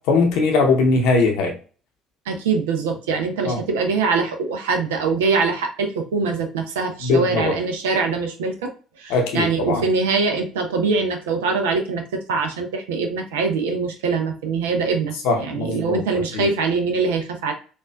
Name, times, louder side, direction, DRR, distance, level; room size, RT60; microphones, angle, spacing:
voice 1, 0.0-1.5 3.4-3.6 7.0-7.6 9.1-9.8 15.2-16.0 16.3-16.5, left 3 dB, 65° left, 1 dB, 0.7 m, -20 dB
voice 2, 2.3-8.7 9.0-17.5, right 4 dB, 75° right, 4 dB, 0.6 m, -23 dB
4.2 x 2.5 x 2.2 m, 0.37 s
figure-of-eight pair, 55°, 0 cm